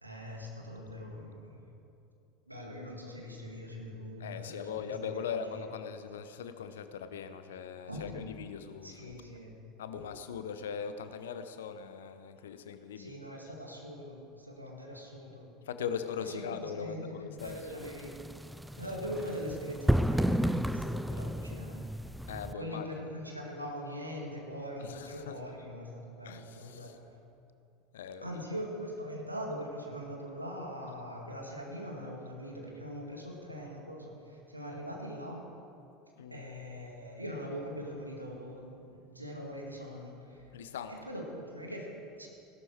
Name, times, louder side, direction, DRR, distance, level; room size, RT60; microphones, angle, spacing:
voice 1, 0.0-1.6 2.5-5.3 5.5-5.6 7.9-8.1 8.8-9.5 9.9-10.1 13.0-15.5 16.2-18.2 18.8-21.9 22.6-26.9 28.2-35.5 36.3-40.4 40.9-42.3, equal, 90° right, -1 dB, 2.1 m, -42 dB
voice 2, 4.2-9.1 9.8-13.1 15.7-17.6 22.3-22.9 24.8-25.4 26.2-26.9 27.9-28.4 36.2-36.4 40.5-41.0, left 7 dB, 70° left, 10 dB, 0.8 m, -40 dB
sound 1, 17.4-22.5, equal, 5° right, 0.3 m, -32 dB
17.0 x 12.0 x 4.7 m, 2.6 s
figure-of-eight pair, 75°, 0 cm